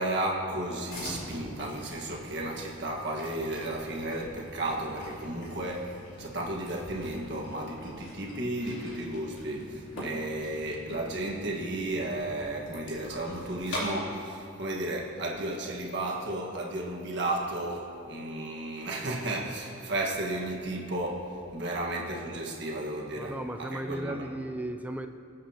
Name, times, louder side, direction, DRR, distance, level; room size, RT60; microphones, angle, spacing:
voice 1, 0.0-23.4 23.7-24.3, right 1 dB, 55° right, -1 dB, 1.6 m, -33 dB
sound 1, 0.9-13.9, equal, 65° left, 3.4 m, -43 dB
voice 2, 23.1-25.1, right 1 dB, 5° right, 6 dB, 0.4 m, -35 dB
23.5 x 8.6 x 2.9 m, 2.5 s
head